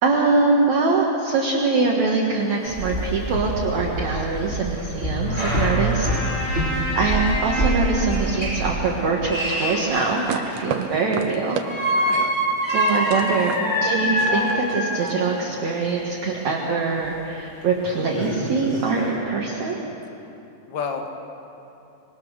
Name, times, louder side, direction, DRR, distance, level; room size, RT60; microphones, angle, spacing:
voice 1, 0.0-6.1 6.4-11.6 12.7-13.6 13.8-19.8, right 4 dB, 55° right, -2 dB, 2.5 m, -23 dB
sound 1, 2.4-2.5 2.7-2.8 3.4-3.5 4.7-10.9 11.6-15.3 17.0-17.1 17.6-17.7 18.0-19.1, equal, 15° left, 5.8 m, -26 dB
Walk footsteps, 2.7-8.8, right 1 dB, 20° right, 2.8 m, -27 dB
voice 2, 6.7-7.1 11.9-12.3 20.7-21.2, left 5 dB, 50° left, 4 dB, 1.4 m, -32 dB
sound 2, 9.9-11.7 12.1-15.1, right 9 dB, 80° right, 2.8 m, -32 dB
26.0 x 21.5 x 6.5 m, 2.9 s
omnidirectional pair, 4.4 m